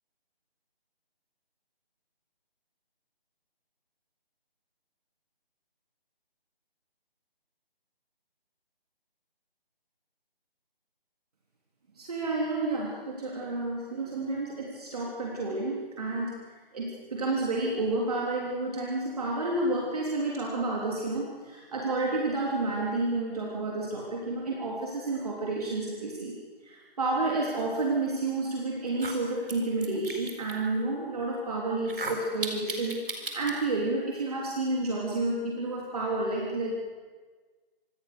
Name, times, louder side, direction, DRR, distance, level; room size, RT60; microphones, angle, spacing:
voice 1, 11.9-26.4 26.6-36.7, right 2 dB, 40° right, -2 dB, 3.4 m, -30 dB
sound 1, 28.3-28.4 28.9-30.5 31.8-33.5, right 3 dB, 60° right, 4.3 m, -36 dB
25.5 x 20.0 x 6.8 m, 1.4 s
figure-of-eight pair, 160°, 30 cm